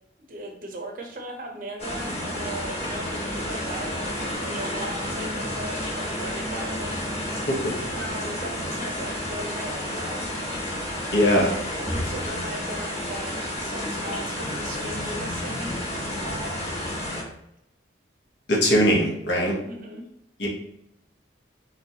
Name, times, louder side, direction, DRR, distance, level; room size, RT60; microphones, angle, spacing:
voice 1, 0.3-7.1 7.3-7.5 7.9-10.3 11.4-15.8 16.2-16.7 19.6-20.0 20.4-20.5, right 1 dB, 45° right, 2 dB, 0.7 m, -37 dB
sound 1, 1.8-17.2, left 1 dB, 35° left, 1.4 m, -31 dB
voice 2, 11.1-11.5 18.5-19.5 20.4-20.5, equal, 65° left, -2 dB, 1.1 m, -21 dB
3.9 x 3.4 x 2.8 m, 0.79 s
head